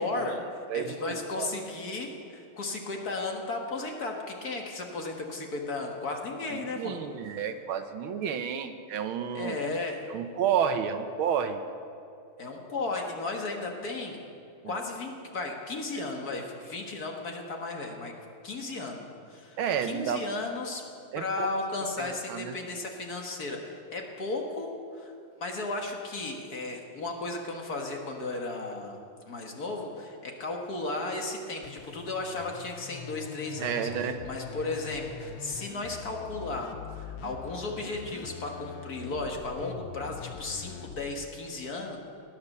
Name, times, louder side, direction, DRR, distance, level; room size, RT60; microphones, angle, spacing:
voice 1, 0.0-7.0 9.3-10.0 12.4-14.2 14.6-18.1 18.4-20.9 21.2-25.1 25.4-29.0 29.3-42.0, left 2 dB, 45° left, 1 dB, 1.9 m, -35 dB
voice 2, 0.7-1.5 6.5-9.6 10.1-11.6 14.6-14.7 16.0-16.1 19.6-20.2 21.1-21.5 22.0-22.5 33.6-34.2, right 8 dB, 75° right, 9 dB, 1.6 m, -31 dB
sound 1, 31.6-41.1, left 9 dB, 80° left, 1.5 m, -43 dB
18.5 x 9.7 x 6.6 m, 2.6 s
omnidirectional pair, 2.4 m